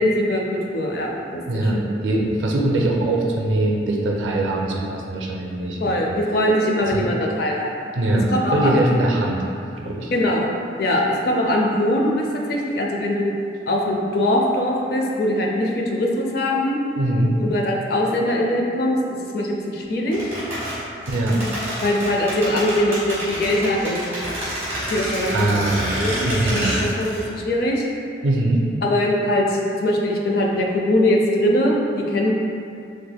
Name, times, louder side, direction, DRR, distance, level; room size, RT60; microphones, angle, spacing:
voice 1, 0.0-1.7 5.8-7.7 8.3-8.8 10.1-10.5 10.8-13.3 13.7-16.8 17.5-20.2 21.8-24.0 24.9-25.5 26.0-27.8 28.8-32.3, left 1 dB, 55° left, -1 dB, 0.4 m, -21 dB
voice 2, 1.5-6.1 6.9-7.0 7.9-9.4 9.7-10.1 17.0-17.4 21.1-21.4 25.3-25.9 26.2-26.7 28.2-28.6, right 1 dB, 85° right, -1 dB, 0.4 m, -22 dB
sound 1, 20.1-27.3 27.5-27.6, equal, 15° right, 1.2 m, -28 dB
3.3 x 3.1 x 2.2 m, 2.4 s
head